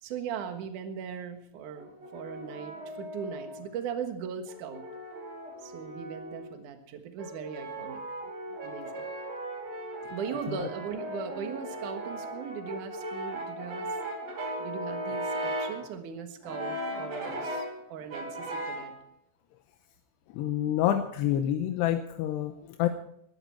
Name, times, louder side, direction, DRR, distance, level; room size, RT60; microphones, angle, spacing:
voice 1, 0.0-4.8 5.6-8.0 8.6-9.1 10.1-13.9 14.6-18.9, right 7 dB, 60° right, 6 dB, 2.5 m, -39 dB
Brass instrument, 1.8-3.7 4.5-6.5 7.2-15.9 16.4-17.8 18.1-18.9, right 1 dB, 45° right, 3.7 m, -37 dB
voice 2, 20.3-22.9, left 11 dB, 85° left, 7 dB, 2.9 m, -28 dB
20.5 x 12.0 x 4.6 m, 0.72 s
omnidirectional pair, 4.8 m